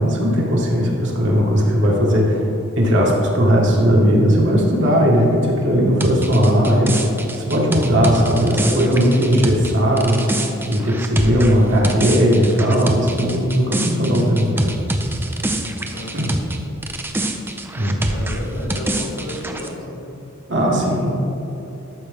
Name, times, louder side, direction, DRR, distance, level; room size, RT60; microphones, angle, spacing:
voice 1, 0.0-2.5 2.8-7.1 7.4-14.8 16.1-16.3 17.8-18.0 20.5-21.1, equal, 60° right, -2 dB, 1.7 m, -17 dB
sound 1, 6.0-16.6 16.8-19.7, right 1 dB, 10° right, 0.5 m, -25 dB
voice 2, 15.9-16.4 18.1-20.2, left 1 dB, 75° left, -1 dB, 1.6 m, -32 dB
13.0 x 6.3 x 3.6 m, 2.9 s
head